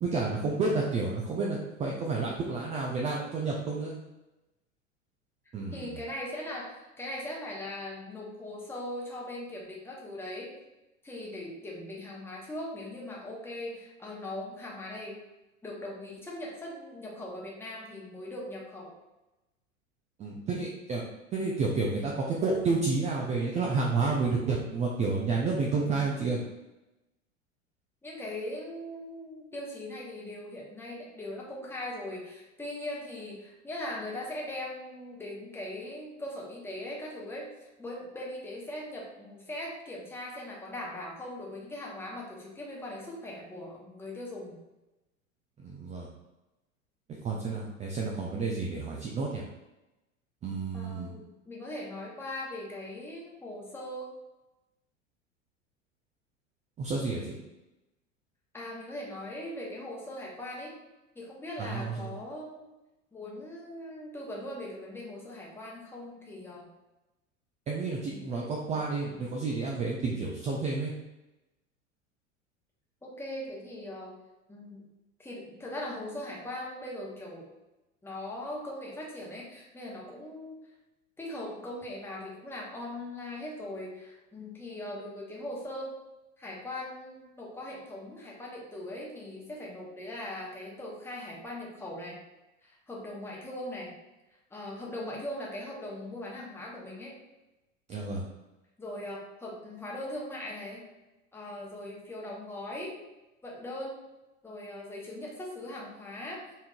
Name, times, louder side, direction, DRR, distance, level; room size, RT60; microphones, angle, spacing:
voice 1, 0.0-4.0 5.5-6.0 20.2-21.0 21.3-26.4 45.6-46.1 47.1-49.4 50.4-51.1 56.8-57.4 61.6-62.2 67.7-70.9 97.9-98.3, right 3 dB, 20° right, -2 dB, 0.4 m, -30 dB
voice 2, 5.7-10.5 11.0-15.2 15.6-18.9 28.0-44.6 50.7-54.1 58.5-60.7 61.1-62.6 63.1-66.7 68.1-68.5 73.0-74.1 74.5-74.8 75.2-77.5 78.0-80.6 81.2-85.9 86.4-92.2 92.6-93.9 94.5-97.2 98.8-100.8 101.3-103.0 103.4-104.0 104.4-106.4, left 1 dB, 5° left, -4 dB, 1.0 m, -40 dB
4.4 x 3.5 x 2.4 m, 0.99 s
figure-of-eight pair, 80°, 39 cm